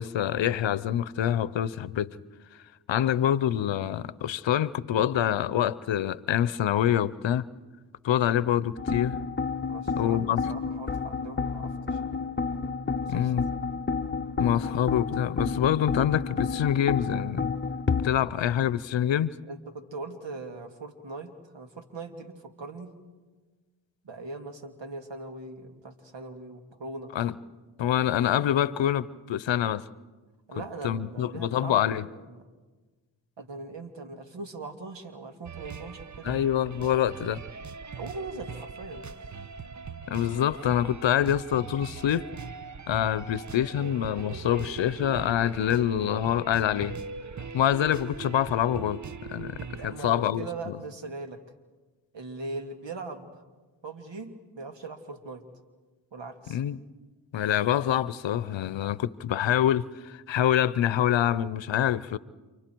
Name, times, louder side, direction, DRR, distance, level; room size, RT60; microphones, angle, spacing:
voice 1, 0.0-2.2 2.9-7.4 8.0-9.1 10.0-10.4 13.1-13.5 14.4-17.5 18.0-19.3 27.1-27.3 27.8-29.8 30.8-32.1 36.2-37.4 40.1-42.3 42.9-47.0 47.5-49.6 49.8-50.7 56.5-56.8 57.3-62.2, left 10 dB, 70° left, 0.8 m, -26 dB
sound 1, 8.8-18.1, left 5 dB, 25° left, 0.9 m, -30 dB
voice 2, 9.7-12.5 13.1-13.3 19.4-23.0 24.0-27.1 30.5-32.5 33.4-36.4 38.0-39.0 49.6-51.4 52.1-53.4 53.8-55.4 56.1-56.6, right 3 dB, 70° right, 2.4 m, -40 dB
sound 2, 35.5-50.0, right 6 dB, 40° right, 0.9 m, -41 dB
30.0 x 28.0 x 4.6 m
supercardioid pair, 40°, 46 cm